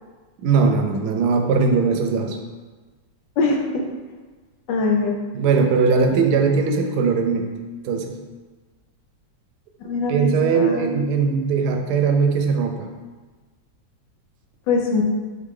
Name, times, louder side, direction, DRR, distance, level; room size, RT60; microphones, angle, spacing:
voice 1, 0.4-2.4 5.3-7.5 7.8-8.1 9.8-12.9, right 5 dB, 75° right, 4 dB, 1.1 m, -20 dB
voice 2, 3.4-3.8 4.7-5.2 9.8-11.0 14.7-15.0, left 3 dB, 90° left, 1 dB, 1.4 m, -22 dB
3.8 x 3.8 x 3.7 m, 1.3 s
omnidirectional pair, 1.9 m